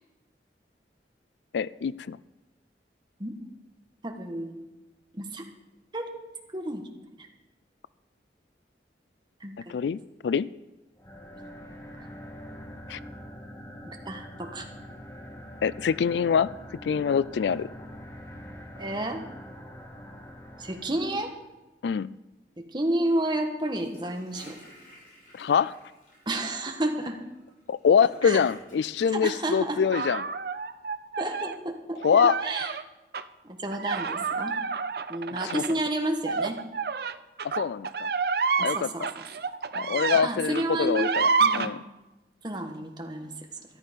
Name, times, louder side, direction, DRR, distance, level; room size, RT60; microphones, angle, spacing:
voice 1, 1.5-2.2 9.7-10.5 12.9-13.0 15.6-16.5 16.8-17.7 21.8-22.1 25.4-25.7 27.7-30.3 32.0-32.4 35.5-35.6 37.6-38.1 38.6-39.1 39.7-41.8, left 6 dB, 80° left, 19 dB, 0.3 m, -25 dB
voice 2, 4.0-4.6 5.1-5.5 5.9-6.2 6.5-6.8 7.2-7.3 9.4-9.7 11.4-11.5 12.0-12.1 14.0-14.7 18.8-19.2 20.6-21.3 22.6-24.6 26.3-27.2 28.2-28.4 29.2-29.8 31.2-32.0 32.4-32.7 33.4-34.5 35.1-36.6 38.6-39.2 39.7-41.1 41.4-41.8 42.4-43.3, right 1 dB, 25° right, 4 dB, 1.3 m, -31 dB
sound 1, 10.9-21.4, equal, 15° left, 1.3 m, -44 dB
Gurgling / Toilet flush, 23.7-29.1, equal, 50° left, 6.0 m, -52 dB
sound 2, 29.9-31.6 32.0-32.8 33.1-33.2 33.7-40.3 40.5-41.7, right 5 dB, 60° right, 0.5 m, -28 dB
13.5 x 11.5 x 5.2 m, 1.1 s
head